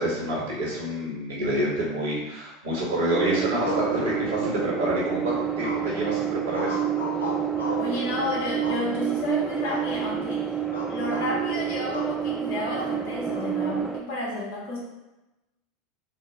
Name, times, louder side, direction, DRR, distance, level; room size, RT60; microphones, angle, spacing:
voice 1, 0.0-6.8, right 1 dB, 70° right, -5 dB, 1.4 m, -27 dB
sound 1, 3.1-14.0, right 8 dB, 5° right, 0.4 m, -29 dB
sound 2, 3.6-4.6 5.6-6.1 6.5-8.0 8.6-9.2 9.7-9.9 10.2-10.4 10.7-11.3 11.9-12.2 12.8-13.5, left 3 dB, 80° left, 0.6 m, -35 dB
voice 2, 7.8-10.6 10.9-14.8, left 2 dB, 60° left, -3 dB, 1.0 m, -31 dB
4.1 x 2.1 x 3.6 m, 1.0 s
figure-of-eight pair, 80°, 0 cm